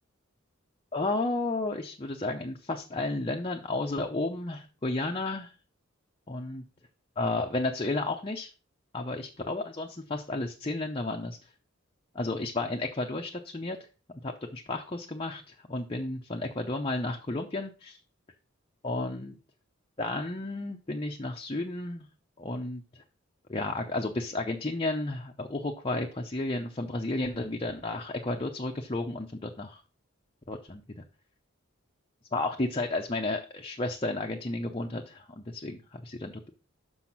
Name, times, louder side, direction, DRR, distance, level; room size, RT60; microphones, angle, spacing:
voice 1, 0.9-5.5 6.3-6.6 7.2-8.5 8.9-11.4 12.1-13.8 14.2-18.0 18.8-19.4 20.0-22.1 22.4-22.8 23.5-29.8 30.5-31.0 32.3-36.5, left 2 dB, 25° left, 2 dB, 0.7 m, -32 dB
6.2 x 5.9 x 6.0 m, 0.35 s
head